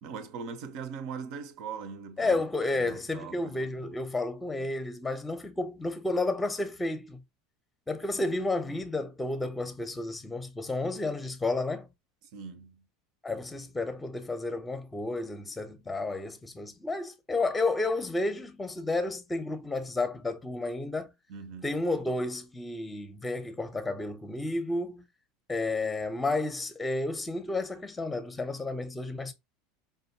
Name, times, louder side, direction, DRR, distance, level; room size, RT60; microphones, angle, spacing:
voice 1, 0.0-2.4 2.7-4.0 8.1-8.3 12.3-12.8 21.3-21.7, right 6 dB, 55° right, 0.6 m, -41 dB
voice 2, 2.2-7.2 7.9-11.9 13.2-21.1 21.6-25.1 25.5-29.3, left 2 dB, 10° left, 0.7 m, -31 dB
5.0 x 2.2 x 2.7 m
hypercardioid pair, 80°, 0 cm